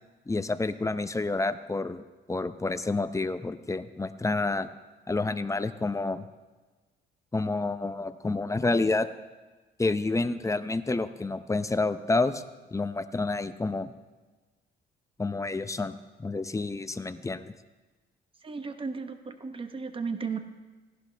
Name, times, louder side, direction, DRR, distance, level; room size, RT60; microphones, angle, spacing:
voice 1, 0.3-4.7 5.1-6.2 7.3-9.1 9.8-12.4 12.7-13.9 15.2-17.5, left 3 dB, 15° left, 11 dB, 0.6 m, -29 dB
voice 2, 18.4-20.4, right 5 dB, 25° right, 8 dB, 1.1 m, -35 dB
18.0 x 11.5 x 3.4 m, 1.3 s
cardioid pair, 90°, 20 cm